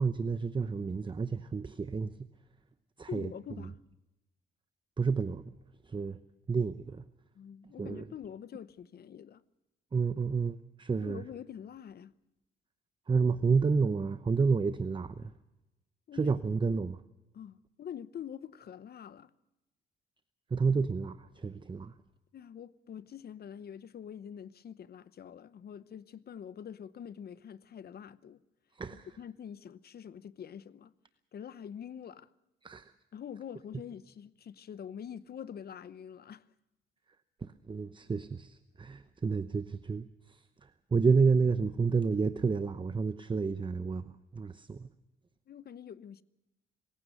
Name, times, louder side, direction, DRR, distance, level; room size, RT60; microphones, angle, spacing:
voice 1, 0.0-2.3 3.0-3.3 5.0-5.6 5.9-6.2 6.5-7.0 7.8-8.1 9.9-11.2 13.1-15.3 16.1-17.0 20.5-21.9 28.8-29.1 32.6-32.9 37.4-44.9, right 5 dB, 25° right, 0.8 m, -30 dB
voice 2, 3.1-3.8 7.3-9.4 11.0-12.1 16.1-16.4 17.3-19.3 22.3-28.4 28.9-30.9 31.3-32.3 33.1-36.4 45.5-46.2, left 8 dB, 55° left, 0.8 m, -45 dB
26.0 x 15.5 x 6.5 m
cardioid pair, 90°, 20 cm